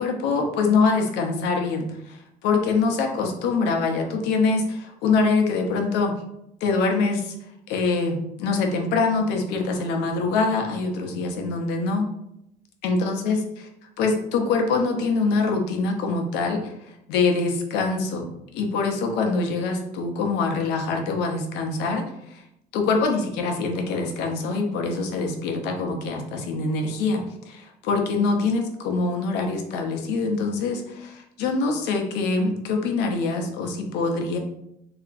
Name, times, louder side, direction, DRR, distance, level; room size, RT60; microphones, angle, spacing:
voice 1, 0.0-6.2 6.6-7.3 7.7-12.1 12.8-13.4 14.0-16.7 17.1-22.4 22.7-34.4, left 4 dB, 85° left, 3 dB, 0.5 m, -24 dB
2.8 x 2.4 x 2.4 m, 0.81 s
cardioid pair, 110°, 17 cm